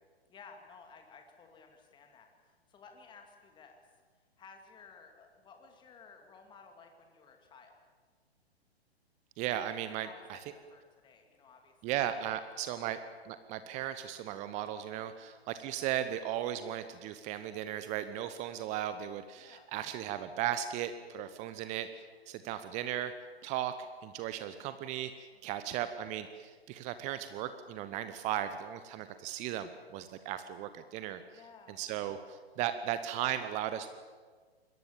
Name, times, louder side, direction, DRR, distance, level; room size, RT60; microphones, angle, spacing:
voice 1, 0.3-3.9 4.4-7.8 9.9-11.8 12.2-12.3 12.7-12.8 15.0-15.2 19.4-19.7 25.3-25.4 31.3-31.8, left 5 dB, 15° left, 4 dB, 2.4 m, -56 dB
voice 2, 9.4-10.4 11.8-23.1 23.4-31.2 31.7-33.9, right 11 dB, 20° right, 11 dB, 1.0 m, -36 dB
27.0 x 21.5 x 7.4 m, 1.5 s
figure-of-eight pair, 120°, 32 cm